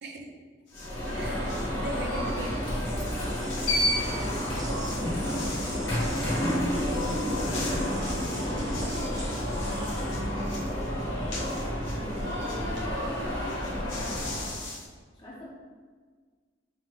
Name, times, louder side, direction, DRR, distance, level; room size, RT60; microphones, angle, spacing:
voice 1, 0.0-0.3 1.1-2.7 4.7-4.8, right 1 dB, 55° right, 2 dB, 0.5 m, -39 dB
Alarm, 0.7-14.7, equal, 90° left, 1.3 m, -30 dB
sound 1, 0.7-1.7 2.2-12.8 13.1-13.2 13.4-14.9, left 3 dB, 70° left, 0.9 m, -43 dB
sound 2, 2.8-10.3, right 1 dB, 20° right, 0.7 m, -45 dB
voice 2, 4.0-14.4 15.1-15.5, left 1 dB, 25° left, -6 dB, 0.6 m, -46 dB
5.3 x 2.2 x 3.0 m, 1.6 s
head